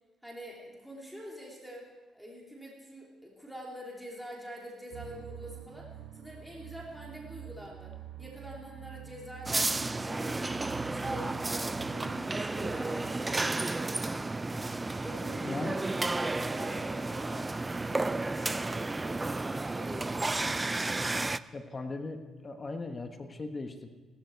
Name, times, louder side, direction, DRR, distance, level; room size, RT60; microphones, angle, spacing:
voice 1, 0.2-7.9 8.2-10.6 10.8-14.4 14.9-15.7 16.1-17.5 17.8-20.6, equal, ahead, -2 dB, 3.0 m, -46 dB
sound 1, 4.9-13.1, right 11 dB, 80° right, 0.6 m, -48 dB
sound 2, 9.5-21.4, right 2 dB, 20° right, 0.4 m, -32 dB
voice 2, 15.4-15.8 21.5-23.9, left 3 dB, 30° left, 6 dB, 1.3 m, -38 dB
17.0 x 13.0 x 4.7 m, 1.3 s
cardioid pair, 90°, 0 cm